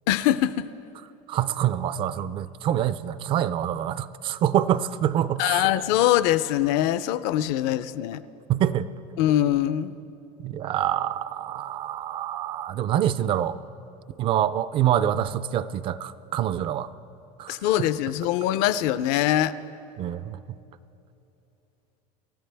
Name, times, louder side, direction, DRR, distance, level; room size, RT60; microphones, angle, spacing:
voice 1, 0.1-0.7 5.4-8.2 9.2-9.9 17.5-19.5, left 13 dB, 60° left, 15 dB, 0.5 m, -23 dB
voice 2, 1.3-5.7 8.5-8.9 10.4-13.6 14.2-16.9 17.4-17.9 20.0-20.4, right 11 dB, 30° right, 16 dB, 0.3 m, -26 dB
27.5 x 13.5 x 3.4 m, 2.9 s
cardioid pair, 165°, 18 cm